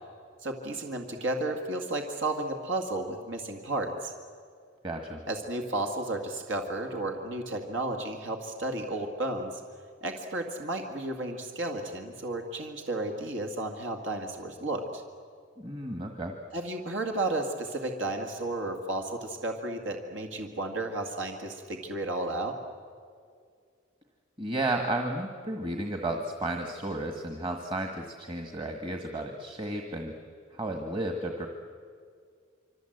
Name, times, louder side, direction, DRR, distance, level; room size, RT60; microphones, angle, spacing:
voice 1, 0.4-4.1 5.3-9.6 10.0-15.0 16.5-22.6, right 2 dB, 75° right, 4 dB, 2.1 m, -33 dB
voice 2, 4.8-5.2 15.6-16.3 24.4-30.1 30.5-31.5, right 1 dB, 25° right, 4 dB, 1.6 m, -33 dB
26.5 x 25.5 x 8.0 m, 2.1 s
head